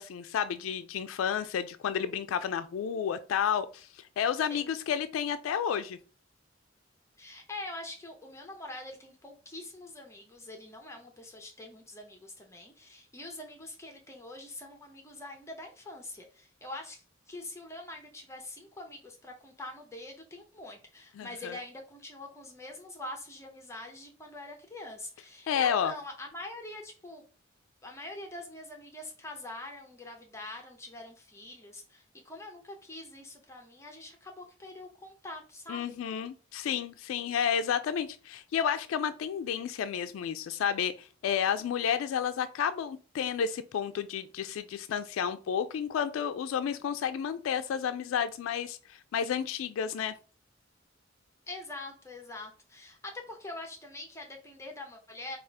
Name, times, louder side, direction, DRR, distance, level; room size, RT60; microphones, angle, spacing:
voice 1, 0.0-3.9 4.2-6.0 21.1-21.6 25.5-25.9 35.7-50.1, left 8 dB, 85° left, 0.3 m, -31 dB
voice 2, 7.2-27.2 27.8-36.0 51.5-55.4, left 2 dB, 15° left, 0.6 m, -44 dB
4.8 x 2.4 x 3.3 m
head